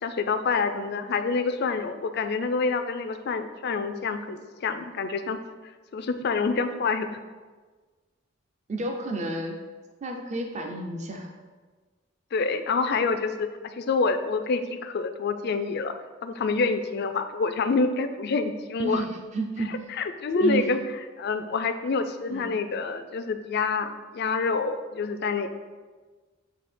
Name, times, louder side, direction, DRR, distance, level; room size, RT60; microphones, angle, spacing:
voice 1, 0.0-5.4 5.9-7.2 12.3-15.9 16.2-19.0 19.7-20.8 21.2-25.5, left 4 dB, 55° left, 9 dB, 0.4 m, -27 dB
voice 2, 8.7-9.6 10.0-11.3 18.8-19.8 20.4-20.7 22.3-22.5, right 2 dB, 35° right, 3 dB, 0.5 m, -31 dB
7.8 x 2.8 x 4.3 m, 1.4 s
head